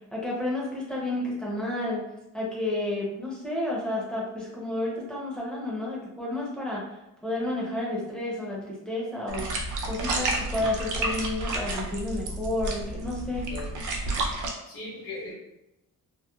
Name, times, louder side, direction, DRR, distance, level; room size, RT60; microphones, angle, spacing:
voice 1, 0.1-2.0 2.3-6.9 7.2-9.5 9.8-13.4, left 1 dB, ahead, -5 dB, 0.6 m, -31 dB
sound 1, 9.3-14.5, right 2 dB, 55° right, 0.5 m, -31 dB
voice 2, 14.7-15.3, left 2 dB, 70° left, -5 dB, 1.2 m, -38 dB
2.9 x 2.0 x 2.2 m, 0.89 s
cardioid pair, 160°, 35 cm